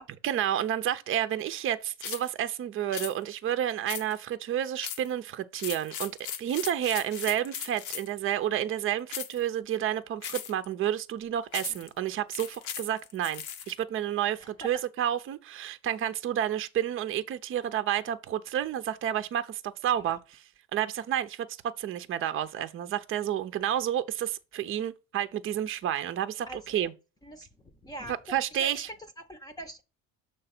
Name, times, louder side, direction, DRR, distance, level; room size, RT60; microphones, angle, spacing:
voice 1, 0.2-20.4 20.7-21.5 21.8-26.9 28.1-28.9, right 11 dB, 45° right, 0.7 m, -30 dB
sound 1, 2.0-2.3 2.9-3.1 3.9-4.3 4.8-5.1 5.5-8.2 9.1-9.4 10.2-10.6 11.5-11.9 12.3-13.7, left 9 dB, 75° left, 1.0 m, -38 dB
voice 2, 26.5-26.9 27.2-29.8, right 1 dB, 15° left, 0.8 m, -43 dB
6.7 x 3.2 x 5.9 m
cardioid pair, 115°, 29 cm